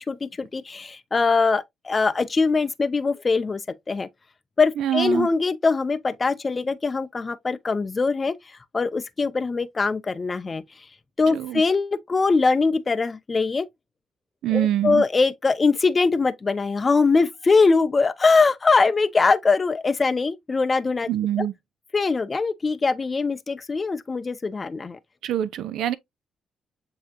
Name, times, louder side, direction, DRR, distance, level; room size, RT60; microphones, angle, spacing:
voice 1, 0.0-3.6 3.9-4.1 4.6-10.8 11.2-13.7 14.5-21.1 21.4-21.5 21.9-25.0, left 4 dB, 30° left, 0.4 m, -22 dB
voice 2, 4.8-5.3 11.3-11.6 14.4-15.0 21.1-21.5 25.2-25.9, right 11 dB, 80° right, 0.5 m, -24 dB
7.2 x 2.8 x 2.6 m
cardioid pair, 90°, 0 cm